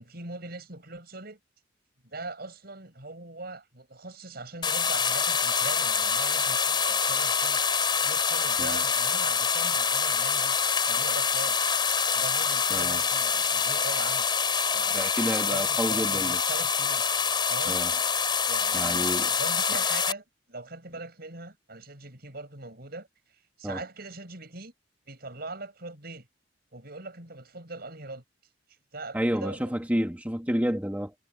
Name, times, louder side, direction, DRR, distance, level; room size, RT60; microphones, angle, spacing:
voice 1, 0.0-1.4 2.0-7.6 7.9-11.6 12.1-14.3 14.7-15.1 15.5-17.0 17.5-17.8 18.5-24.7 25.1-26.3 26.7-28.2 28.9-29.7, right 2 dB, 55° right, 7.3 m, -41 dB
sound 1, 4.6-20.1, left 6 dB, 25° left, 3.7 m, -26 dB
voice 2, 12.7-13.0 14.9-16.4 17.7-17.9 18.7-19.3 23.6-23.8 29.1-31.1, equal, 10° right, 2.0 m, -29 dB
head